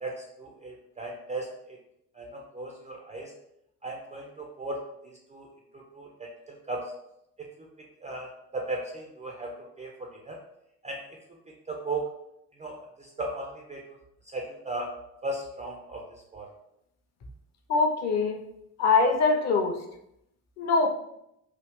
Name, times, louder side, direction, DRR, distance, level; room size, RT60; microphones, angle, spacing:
voice 1, 0.4-1.5 2.2-3.3 3.8-4.8 5.3-5.5 5.9-6.1 6.7-6.8 8.0-8.3 8.5-9.5 9.8-9.9 10.3-10.4 10.8-11.0 11.7-12.1 12.6-12.8 13.2-13.8 14.3-14.9 15.2-16.0 16.3-16.5, right 2 dB, 15° right, 0 dB, 0.4 m, -35 dB
voice 2, 17.7-18.4 18.8-19.8 20.6-20.9, left 4 dB, 35° left, 4 dB, 0.6 m, -23 dB
3.1 x 2.4 x 3.4 m, 0.80 s
figure-of-eight pair, 50°, 47 cm